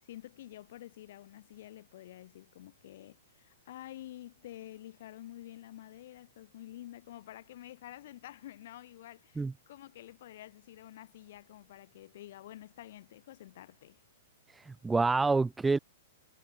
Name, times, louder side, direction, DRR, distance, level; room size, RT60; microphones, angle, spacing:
voice 1, 0.0-14.0, left 13 dB, 50° left, 4.7 m, -49 dB
voice 2, 14.5-15.8, right 3 dB, 10° right, 0.4 m, -27 dB
figure-of-eight pair, 105°, 0 cm